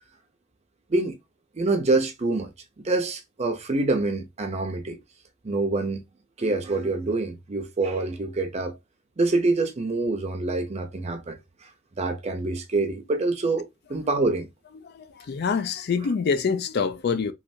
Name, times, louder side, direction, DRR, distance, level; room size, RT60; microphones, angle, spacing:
voice 1, 1.5-2.5 2.8-5.0 5.4-6.0 6.4-8.7 9.2-11.7 12.0-14.5, right 2 dB, 35° right, 0.5 m, -26 dB
voice 2, 14.8-17.3, left 5 dB, 50° left, 0.4 m, -26 dB
3.1 x 2.4 x 2.6 m
head